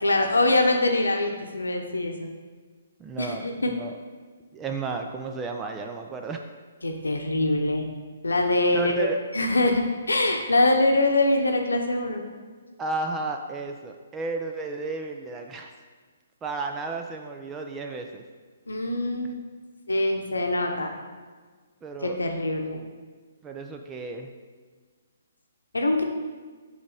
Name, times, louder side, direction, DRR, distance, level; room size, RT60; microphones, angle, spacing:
voice 1, 0.0-2.3 3.2-3.7 6.8-7.9 8.2-9.1 9.3-12.2 18.7-19.4 19.9-20.9 22.0-22.8 25.7-26.0, left 2 dB, 85° left, 3 dB, 0.9 m, -23 dB
voice 2, 3.0-3.9 4.5-6.4 8.7-9.2 12.8-15.7 16.4-18.2 21.8-22.2 23.4-24.3, right 3 dB, 15° right, 3 dB, 0.6 m, -33 dB
7.2 x 3.4 x 5.0 m, 1.5 s
figure-of-eight pair, 135°, 0 cm